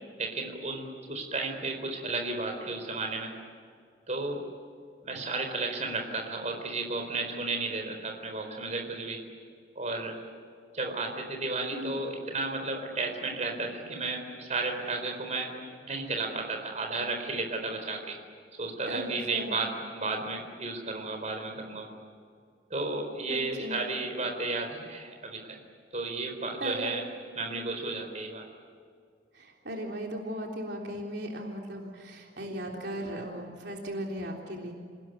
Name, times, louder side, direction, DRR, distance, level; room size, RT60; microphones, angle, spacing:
voice 1, 0.2-3.3 4.1-4.4 5.0-9.2 9.8-10.1 10.7-15.5 15.9-18.2 18.6-21.9 22.7-25.6 25.9-27.0 27.4-28.4, right 3 dB, 40° right, 4 dB, 4.2 m, -33 dB
voice 2, 18.9-19.6 23.3-23.8 26.6-26.9 29.3-34.7, equal, 65° right, 0 dB, 3.6 m, -37 dB
28.0 x 19.5 x 9.3 m, 2.2 s
head